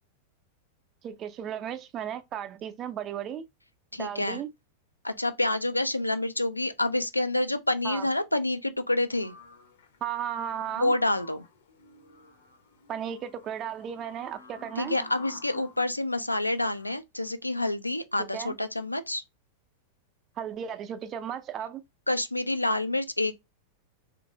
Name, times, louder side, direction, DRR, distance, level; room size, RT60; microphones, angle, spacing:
voice 1, 1.0-3.4 3.9-4.5 7.8-8.1 10.0-10.9 12.9-15.0 18.3-18.5 20.4-21.8, right 9 dB, 30° right, 0.5 m, -35 dB
voice 2, 3.9-4.4 5.0-9.3 10.8-11.4 14.8-19.2 22.1-23.4, left 2 dB, 85° left, 0.3 m, -28 dB
sound 1, 9.2-15.8 16.5-16.9, left 2 dB, 60° left, 0.7 m, -49 dB
3.2 x 2.5 x 2.7 m
figure-of-eight pair, 90°, 0 cm